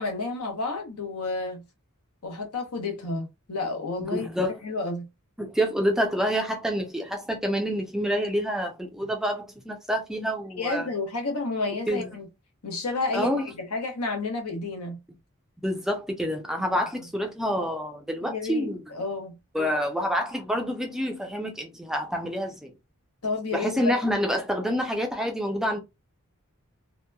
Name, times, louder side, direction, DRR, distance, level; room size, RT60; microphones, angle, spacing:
voice 1, 0.0-1.6 2.2-4.3 4.6-5.1 10.6-12.3 12.6-15.0 16.6-16.8 18.2-19.4 23.2-23.9, left 3 dB, 90° left, 0.9 m, -31 dB
voice 2, 4.0-4.5 5.4-10.9 11.9-12.1 13.1-13.5 15.6-18.8 19.5-22.7 23.5-25.8, equal, ahead, 0.4 m, -27 dB
2.8 x 2.1 x 2.2 m
head